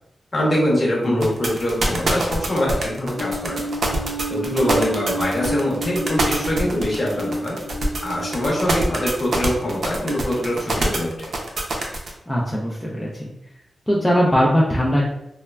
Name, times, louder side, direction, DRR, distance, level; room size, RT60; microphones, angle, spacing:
voice 1, 0.3-3.7 4.3-7.6 8.0-11.3, left 1 dB, 35° left, -4 dB, 0.8 m, -23 dB
sound 1, 1.2-12.1, right 2 dB, 60° right, 0.5 m, -24 dB
sound 2, 3.2-9.6, right 1 dB, 80° left, 0.5 m, -30 dB
voice 2, 12.3-13.2 13.9-15.1, equal, 5° left, -5 dB, 0.3 m, -20 dB
3.2 x 2.1 x 2.2 m, 0.83 s
wide cardioid pair, 150°, 0 cm